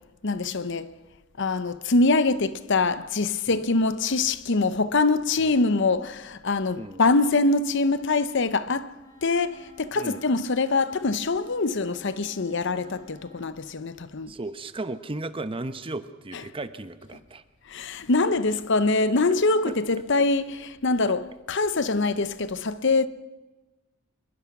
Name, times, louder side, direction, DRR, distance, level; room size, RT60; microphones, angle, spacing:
voice 1, 0.2-0.9 1.4-9.0 9.2-14.3 17.7-23.1, left 3 dB, 60° left, 0.8 m, -24 dB
Wind instrument woodwind instrument, 9.0-13.6, equal, 15° left, 3.6 m, -52 dB
voice 2, 9.9-10.2 14.3-17.4 19.6-19.8, right 2 dB, 25° right, 0.9 m, -35 dB
25.0 x 21.5 x 6.0 m
head